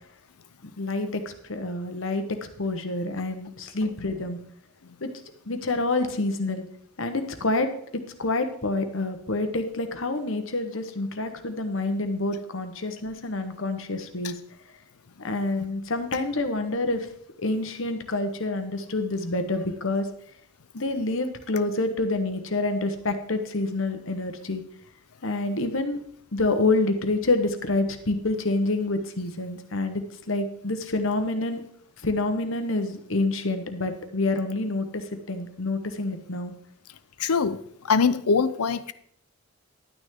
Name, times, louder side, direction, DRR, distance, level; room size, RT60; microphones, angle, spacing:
voice 1, 0.6-2.2 2.6-4.4 5.0-5.1 5.5-6.6 7.0-7.7 8.2-14.3 15.2-17.1 17.4-20.1 20.7-24.6 25.2-26.0 26.3-30.0 30.3-31.6 32.0-36.5, left 2 dB, 60° left, 7 dB, 1.2 m, -27 dB
voice 2, 37.2-38.9, left 5 dB, 90° left, 14 dB, 0.7 m, -24 dB
11.5 x 9.3 x 3.7 m, 0.67 s
head